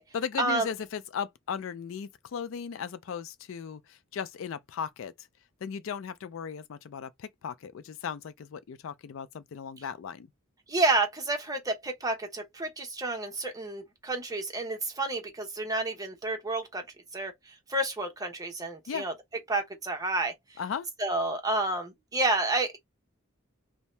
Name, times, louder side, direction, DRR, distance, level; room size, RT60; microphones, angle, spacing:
voice 1, 0.1-5.1 5.6-10.3 18.9-19.1 20.6-20.9, left 7 dB, 65° left, 0.4 m, -36 dB
voice 2, 10.7-16.8 17.1-19.1 19.5-20.3 21.0-22.8, right 2 dB, 15° right, 0.7 m, -30 dB
2.7 x 2.1 x 3.1 m
head